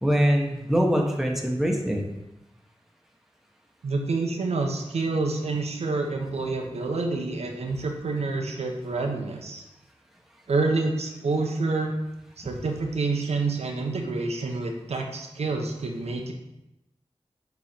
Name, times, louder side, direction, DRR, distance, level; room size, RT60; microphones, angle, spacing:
voice 1, 0.0-2.0 12.5-12.6, equal, 5° right, 0 dB, 1.0 m, -23 dB
voice 2, 3.8-9.6 10.5-11.9 12.4-16.3, right 3 dB, 85° right, 2 dB, 0.8 m, -28 dB
7.0 x 3.1 x 4.3 m, 0.91 s
wide cardioid pair, 65°, 11 cm